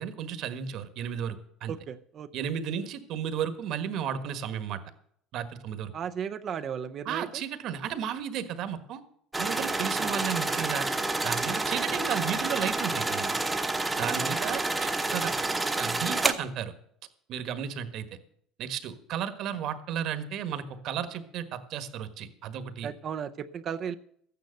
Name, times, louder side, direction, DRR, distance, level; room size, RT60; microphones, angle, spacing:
voice 1, 0.0-1.7 2.3-4.8 5.3-5.9 7.0-9.0 9.4-10.9 11.2-13.3 14.0-15.3 15.8-16.7 17.3-18.0 18.6-22.9, right 8 dB, 55° right, 10 dB, 1.5 m, -33 dB
voice 2, 1.7-2.3 5.9-7.4 10.0-10.1 11.7-11.8 14.0-14.5 22.8-23.9, right 8 dB, 40° right, 8 dB, 0.6 m, -36 dB
sound 1, 9.3-16.3, right 2 dB, 10° right, 1.0 m, -29 dB
13.5 x 9.4 x 6.6 m, 0.66 s
cardioid pair, 135°, 0 cm